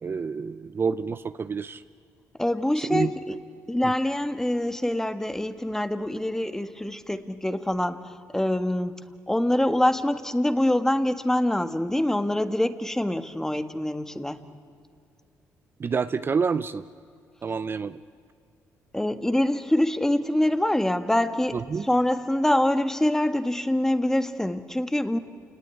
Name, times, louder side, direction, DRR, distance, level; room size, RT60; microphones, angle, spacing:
voice 1, 0.0-1.8 2.8-3.1 3.8-3.9 15.8-16.8 17.4-18.0 21.5-21.9, right 5 dB, 35° right, 13 dB, 0.6 m, -28 dB
voice 2, 2.4-3.3 3.7-8.9 9.3-14.4 18.9-25.2, left 1 dB, 5° left, 10 dB, 1.5 m, -25 dB
28.5 x 19.0 x 9.6 m, 2.4 s
cardioid pair, 75°, 6 cm